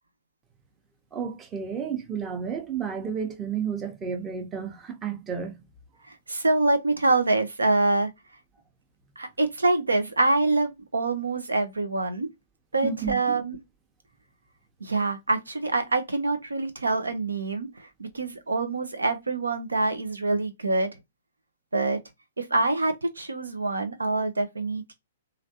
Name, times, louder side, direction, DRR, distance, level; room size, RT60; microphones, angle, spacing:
voice 1, 1.1-5.5 12.8-13.4, right 7 dB, 20° right, 0.8 m, -31 dB
voice 2, 6.3-8.1 9.2-12.3 12.7-13.6 14.8-20.9 21.7-22.0 22.4-24.9, right 2 dB, 80° right, 0.7 m, -25 dB
3.2 x 2.5 x 2.8 m
figure-of-eight pair, 115°, 0 cm